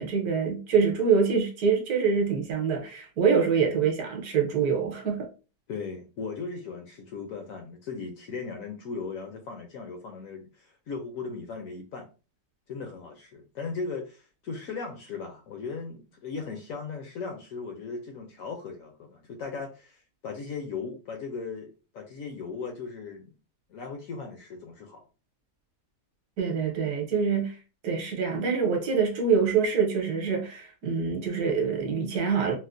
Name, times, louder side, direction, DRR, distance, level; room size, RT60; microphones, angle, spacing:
voice 1, 0.0-5.3 26.4-27.6 27.8-32.5, right 6 dB, 70° right, 1.2 m, -25 dB
voice 2, 5.7-12.1 12.7-23.3 23.7-25.0, left 4 dB, 70° left, 0.9 m, -37 dB
4.2 x 2.0 x 2.5 m
omnidirectional pair, 1.8 m